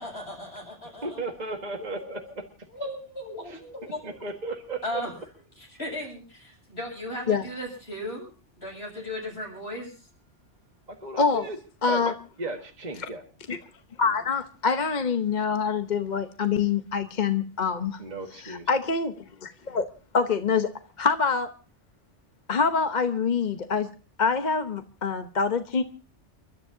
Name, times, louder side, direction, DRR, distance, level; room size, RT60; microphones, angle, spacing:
voice 1, 0.0-1.2 1.8-2.3 2.7-4.2 4.8-5.1 5.6-8.3 8.6-9.9, left 1 dB, 60° left, 8.5 m, -36 dB
voice 2, 1.0-2.4 3.5-3.6 4.0-5.0 10.9-11.6 11.9-12.0 12.4-13.2 18.0-18.7, right 2 dB, 35° right, 1.8 m, -35 dB
voice 3, 11.2-11.5 11.8-12.1 13.0-13.1 13.5-13.6 14.0-18.0 18.3-19.1 19.4-19.9 20.1-20.7 21.0-21.5 22.5-23.9 24.2-25.8, left 5 dB, 40° left, 1.0 m, -25 dB
30.0 x 13.0 x 2.7 m
omnidirectional pair, 1.2 m